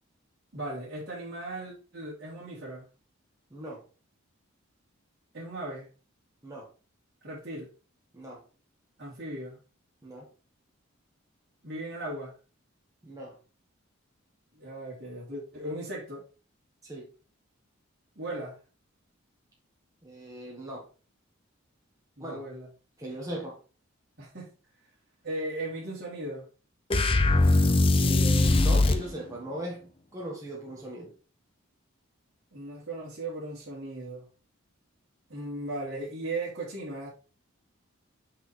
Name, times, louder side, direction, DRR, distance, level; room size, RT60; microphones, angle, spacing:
voice 1, 0.5-2.8 5.3-5.9 7.2-7.7 9.0-9.6 11.6-12.3 14.5-16.2 18.2-18.6 22.2-22.7 24.2-24.5 25.2-26.4 32.5-34.2 35.3-37.1, right 1 dB, 50° right, 2.7 m, -37 dB
voice 2, 3.5-3.8 6.4-6.7 8.1-8.4 10.0-10.3 13.0-13.4 16.8-17.1 20.0-20.9 22.2-22.4 23.0-23.6 28.0-31.1, right 1 dB, 15° right, 1.3 m, -39 dB
sound 1, 26.9-29.1, left 2 dB, 25° left, 0.5 m, -21 dB
6.0 x 5.8 x 3.2 m
head